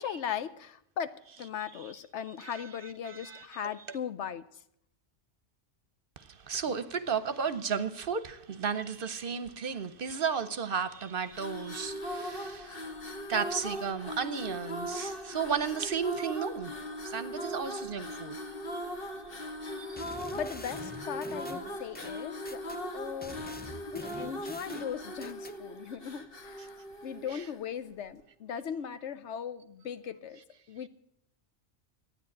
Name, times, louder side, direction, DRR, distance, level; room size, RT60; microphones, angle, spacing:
voice 1, 0.0-4.6 20.3-22.6 22.9-23.6 23.9-30.4 30.7-30.9, left 8 dB, 75° left, 1.1 m, -38 dB
voice 2, 3.1-3.7 6.2-12.9 13.3-16.7 17.0-18.4 18.7-18.8 19.6-20.2 27.3-27.4, right 6 dB, 55° right, 0.9 m, -34 dB
sound 1, 11.3-27.7, equal, 50° left, 1.5 m, -39 dB
sound 2, 20.0-22.8 23.2-25.6, left 1 dB, 10° left, 0.4 m, -46 dB
13.0 x 9.5 x 8.5 m
omnidirectional pair, 1.2 m